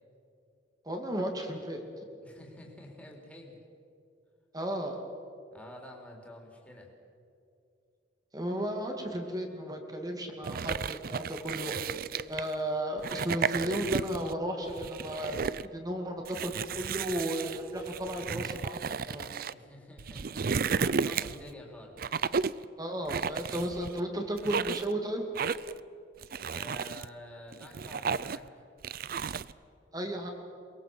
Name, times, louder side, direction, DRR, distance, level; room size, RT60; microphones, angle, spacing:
voice 1, 0.8-1.8 4.5-5.0 8.3-12.0 12.3-15.4 15.7-18.8 19.0-19.3 22.8-25.2 29.9-30.3, right 1 dB, 20° right, 3 dB, 2.3 m, -34 dB
voice 2, 2.2-3.6 5.5-6.9 19.5-22.1 26.5-28.5, left 1 dB, 10° left, 0 dB, 3.7 m, -49 dB
sound 1, 10.4-12.5 13.0-14.3 14.7-15.7 16.3-19.5 20.0-21.5 22.0-22.6 23.1-24.0 24.4-24.9 25.4-25.8 26.2-27.1 27.5-28.5 28.8-29.5, right 5 dB, 55° right, 0.5 m, -33 dB
23.0 x 22.0 x 7.8 m, 2.6 s
head